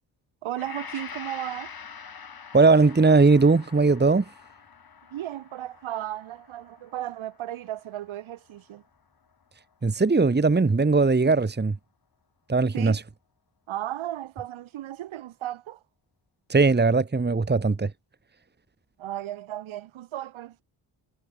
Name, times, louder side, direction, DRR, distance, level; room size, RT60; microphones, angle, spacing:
voice 1, 0.4-1.7 5.1-8.8 12.7-13.0 13.7-15.8 19.0-20.6, right 13 dB, 80° right, 6.3 m, -35 dB
Gong, 0.5-8.9 9.3-9.5, left 6 dB, 50° left, 3.4 m, -45 dB
voice 2, 2.5-4.2 9.8-11.8 12.5-13.0 16.5-17.9, right 3 dB, 20° right, 1.6 m, -19 dB
supercardioid pair, 45°, 47 cm